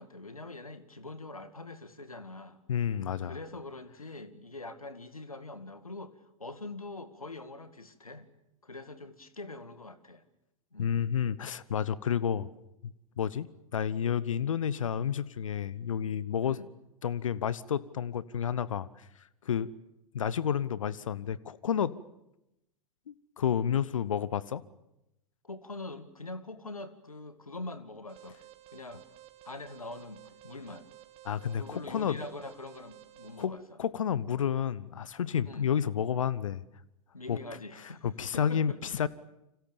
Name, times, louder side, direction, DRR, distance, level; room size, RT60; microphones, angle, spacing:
voice 1, 0.0-2.6 3.2-6.1 6.4-8.3 8.6-10.2 10.7-11.0 16.5-16.7 25.4-28.4 28.7-29.0 29.4-30.9 31.5-33.8 35.4-35.7 37.1-38.1 38.3-38.8, left 2 dB, 85° left, 12 dB, 2.2 m, -43 dB
voice 2, 2.7-3.4 10.8-12.5 12.8-12.9 13.2-16.6 17.0-19.1 19.4-19.7 20.1-21.9 23.1-24.6 31.2-32.2 33.4-33.5 33.8-36.6 37.3-37.4 37.8-39.1, left 8 dB, 65° left, 20 dB, 1.0 m, -30 dB
Alarm, 28.1-33.4, right 14 dB, 35° right, 2.7 m, -54 dB
30.0 x 26.0 x 7.0 m, 0.87 s
figure-of-eight pair, 95°, 18 cm